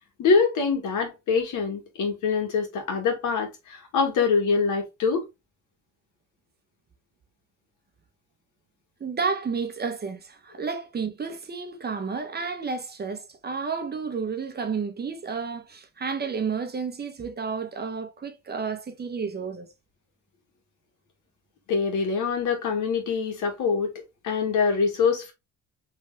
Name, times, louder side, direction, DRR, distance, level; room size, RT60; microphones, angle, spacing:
voice 1, 0.2-5.2 21.7-25.3, left 5 dB, 80° left, 2.0 m, -24 dB
voice 2, 9.0-19.7, right 5 dB, 35° right, 0.9 m, -31 dB
4.7 x 3.4 x 3.1 m
cardioid pair, 90°, 30 cm